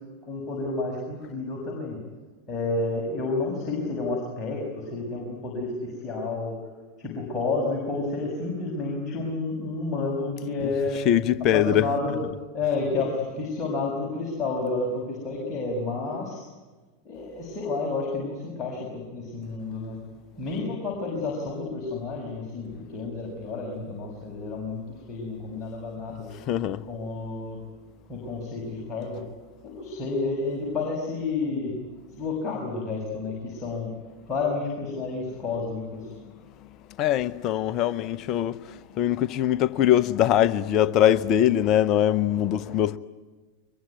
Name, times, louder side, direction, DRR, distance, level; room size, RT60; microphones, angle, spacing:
voice 1, 0.2-2.0 2.5-6.7 7.0-11.0 11.5-12.2 12.5-16.5 17.0-20.0 20.4-26.3 26.9-27.6 28.1-29.2 29.6-31.7 32.1-33.9 34.3-36.1, left 3 dB, 20° left, 6.8 m, -30 dB
voice 2, 11.0-11.9 26.5-26.8 37.0-43.0, left 11 dB, 35° left, 0.9 m, -22 dB
23.5 x 22.5 x 9.6 m
figure-of-eight pair, 90°, 0 cm